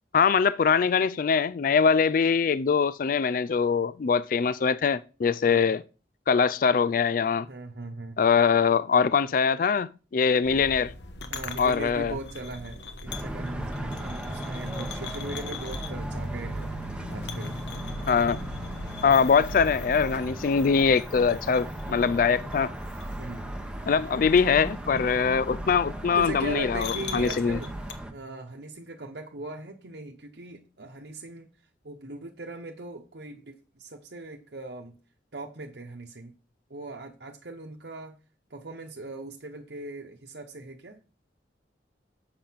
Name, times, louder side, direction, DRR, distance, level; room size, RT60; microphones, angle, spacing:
voice 1, 0.1-5.8 6.3-7.5 8.2-10.9 11.6-12.1 18.1-18.4 19.0-22.7 23.9-27.6, left 6 dB, 50° left, 0.4 m, -23 dB
voice 2, 7.5-8.3 11.3-16.7 17.1-17.6 23.2-23.6 26.1-27.7 28.1-31.5 31.8-34.9 35.3-36.3 36.7-38.2 38.5-41.0, right 2 dB, 70° right, 1.0 m, -39 dB
sound 1, 10.4-27.9, left 2 dB, 80° left, 1.2 m, -40 dB
sound 2, 13.1-28.1, right 1 dB, 5° right, 1.1 m, -37 dB
7.5 x 6.7 x 5.8 m
head